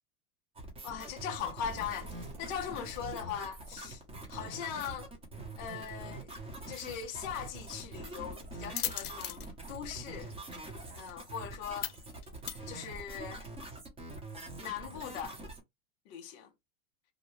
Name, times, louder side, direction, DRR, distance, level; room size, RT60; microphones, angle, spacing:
sound 1, 0.6-15.6, right 2 dB, 15° right, 0.7 m, -45 dB
voice 1, 0.8-4.0 4.3-5.1 5.6-6.3 6.7-10.3 11.0-11.9 12.6-13.5 14.6-15.4 16.1-16.5, left 8 dB, 25° left, 0.4 m, -40 dB
sound 2, 1.6-5.3, right 1 dB, 40° right, 0.9 m, -51 dB
sound 3, 6.4-13.3, left 12 dB, 75° left, 0.7 m, -43 dB
2.6 x 2.0 x 3.1 m
supercardioid pair, 140°, 44 cm